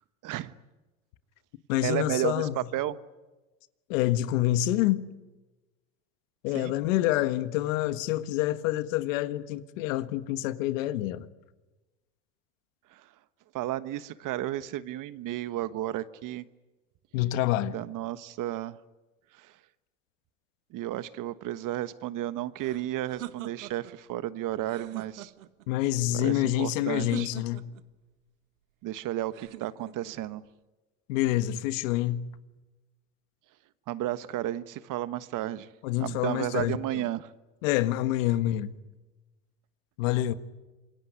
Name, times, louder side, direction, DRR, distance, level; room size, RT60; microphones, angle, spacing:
voice 1, 0.2-0.5 1.8-3.0 6.5-6.7 12.9-13.0 13.5-16.4 17.7-18.8 19.4-19.5 20.7-25.3 26.1-27.3 28.8-30.4 33.9-35.7 36.0-37.3, right 14 dB, 50° right, 1.4 m, -33 dB
voice 2, 1.7-2.6 3.9-5.1 6.4-11.3 17.1-17.8 25.7-27.7 31.1-32.3 35.8-37.0 37.6-38.7 40.0-40.3, left 14 dB, 75° left, 1.6 m, -27 dB
sound 1, 22.6-24.0 24.6-25.7 26.9-27.9 29.3-30.2, right 15 dB, 90° right, 1.4 m, -43 dB
27.0 x 23.0 x 9.6 m
supercardioid pair, 90°, 39 cm